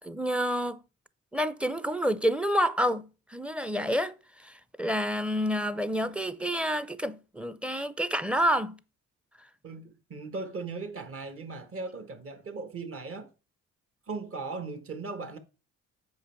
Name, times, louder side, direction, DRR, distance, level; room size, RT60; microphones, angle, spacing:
voice 1, 0.0-0.8 1.3-4.1 4.4-8.8, equal, 5° right, 0.5 m, -28 dB
voice 2, 9.6-13.3 14.1-15.4, right 3 dB, 45° right, 1.4 m, -38 dB
7.9 x 5.3 x 4.4 m
cardioid pair, 90°, 30 cm